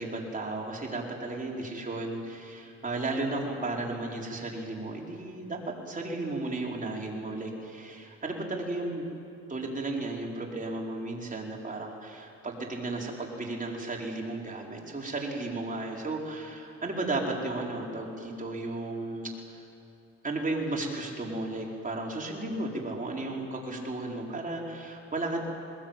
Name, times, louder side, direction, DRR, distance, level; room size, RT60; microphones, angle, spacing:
voice 1, 0.0-9.1 9.5-19.3 20.2-25.5, right 2 dB, 25° right, -1 dB, 4.7 m, -34 dB
21.0 x 21.0 x 9.1 m, 2.7 s
cardioid pair, 90°, 30 cm